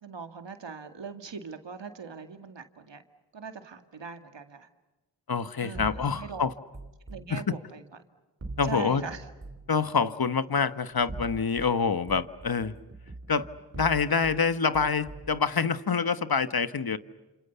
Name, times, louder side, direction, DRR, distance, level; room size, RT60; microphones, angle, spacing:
voice 1, 0.0-3.0 3.3-4.7 5.6-6.4 7.1-7.8 8.6-9.3, right 5 dB, 85° right, 7 dB, 2.2 m, -41 dB
voice 2, 5.3-6.5 7.3-7.4 8.6-9.0 9.7-12.7 13.3-13.5 13.7-17.0, left 5 dB, 55° left, 12 dB, 1.4 m, -26 dB
sound 1, 5.7-7.3 8.4-9.7 10.9-11.7 12.1-14.4 14.7-15.4, right 2 dB, 35° right, 3.1 m, -42 dB
30.0 x 28.0 x 6.9 m, 1.1 s
cardioid pair, 40°, 42 cm